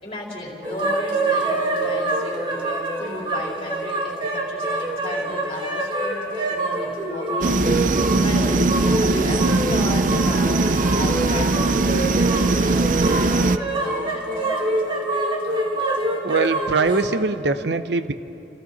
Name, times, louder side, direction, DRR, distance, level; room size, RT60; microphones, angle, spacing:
voice 1, 0.0-7.6 8.2-14.3, left 1 dB, 30° left, -3 dB, 4.3 m, -35 dB
sound 1, 0.6-17.1, right 2 dB, 30° right, 2.2 m, -26 dB
sound 2, 7.4-13.6, right 3 dB, 50° right, 0.5 m, -20 dB
voice 2, 16.2-18.1, right 4 dB, 80° right, 11 dB, 0.8 m, -22 dB
29.0 x 29.0 x 4.2 m, 2.9 s
head